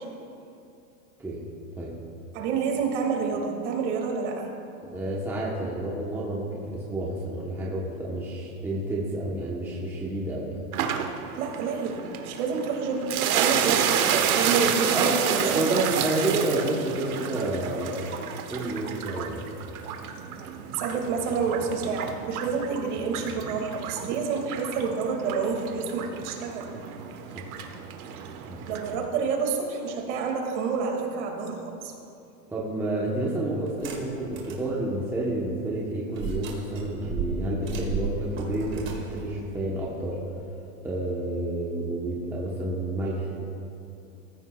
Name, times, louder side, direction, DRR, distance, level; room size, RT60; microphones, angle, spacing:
voice 1, 2.3-4.5 11.4-15.8 20.7-26.7 28.7-31.9, right 5 dB, 50° right, 2 dB, 2.2 m, -28 dB
voice 2, 4.9-10.6 14.9-18.1 18.5-19.4 27.3-27.4 28.5-28.6 32.5-40.2 40.8-43.3, right 1 dB, 5° right, -4 dB, 0.9 m, -30 dB
sound 1, 10.7-28.9, right 8 dB, 70° right, 1.3 m, -30 dB
sound 2, 33.7-34.7 35.1-35.2 36.1-40.4, right 4 dB, 25° right, 2.0 m, -34 dB
19.0 x 14.5 x 2.3 m, 2.6 s
supercardioid pair, 160°, 45 cm